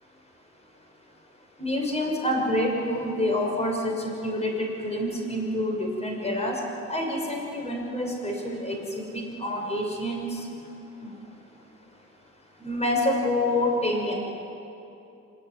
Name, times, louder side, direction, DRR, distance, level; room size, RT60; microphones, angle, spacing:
voice 1, 1.6-6.6 6.9-10.4 12.6-14.2, left 1 dB, 20° left, 0 dB, 5.8 m, -27 dB
26.5 x 13.0 x 9.7 m, 2.9 s
cardioid pair, 90°, 30 cm